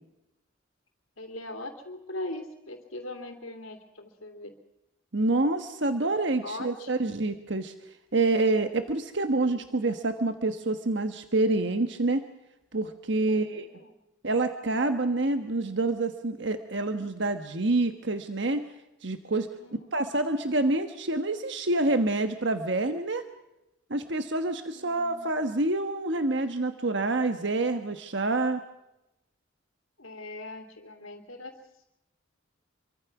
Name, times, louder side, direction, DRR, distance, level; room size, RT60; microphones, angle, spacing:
voice 1, 1.2-4.5 6.4-7.1 13.3-14.0 19.6-20.1 24.7-25.3 30.0-31.9, left 2 dB, 85° left, 2 dB, 2.9 m, -41 dB
voice 2, 5.1-7.7 8.1-12.2 12.7-13.7 14.2-18.6 19.0-19.5 19.9-23.3 23.9-28.6, right 2 dB, 60° right, 8 dB, 1.3 m, -27 dB
27.0 x 24.0 x 6.0 m, 0.93 s
head